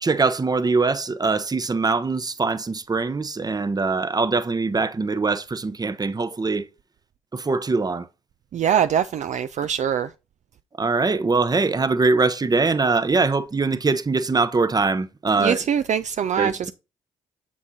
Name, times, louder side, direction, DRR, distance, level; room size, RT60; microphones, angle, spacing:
voice 1, 0.0-6.7 7.3-8.1 10.8-15.6 16.4-16.7, right 3 dB, 25° right, 0.8 m, -22 dB
voice 2, 8.5-10.1 15.4-16.7, right 8 dB, 50° right, 0.4 m, -23 dB
7.4 x 6.2 x 2.8 m
hypercardioid pair, 45°, 16 cm